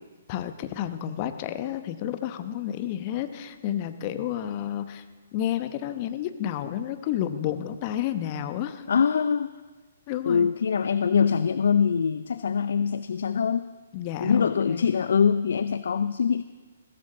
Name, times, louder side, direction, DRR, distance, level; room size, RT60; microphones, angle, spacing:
voice 1, 0.3-5.0 5.3-8.8 10.1-10.5 13.9-15.0, left 11 dB, 35° left, 10 dB, 1.0 m, -31 dB
voice 2, 8.9-9.5 10.3-13.7 14.2-16.4, left 6 dB, 60° left, 14 dB, 0.5 m, -23 dB
21.0 x 16.0 x 3.8 m, 1.3 s
figure-of-eight pair, 125°, 0 cm